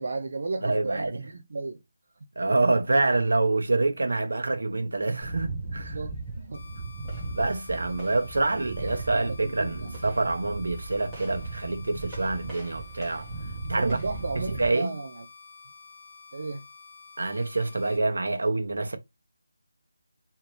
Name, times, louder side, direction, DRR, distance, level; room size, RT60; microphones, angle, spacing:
voice 1, 0.0-1.8 5.8-6.6 7.9-8.0 8.8-10.0 13.7-15.2 16.3-16.6, right 3 dB, 40° right, 0.4 m, -34 dB
voice 2, 0.6-1.2 2.4-6.0 7.3-13.3 13.7-14.0 14.4-14.9 17.2-19.0, right 2 dB, 70° right, 0.9 m, -26 dB
sound 1, 5.2-14.7, right 2 dB, 5° right, 0.9 m, -37 dB
sound 2, 6.5-18.0, left 5 dB, 40° left, 1.1 m, -50 dB
2.8 x 2.6 x 3.1 m
figure-of-eight pair, 175°, 0 cm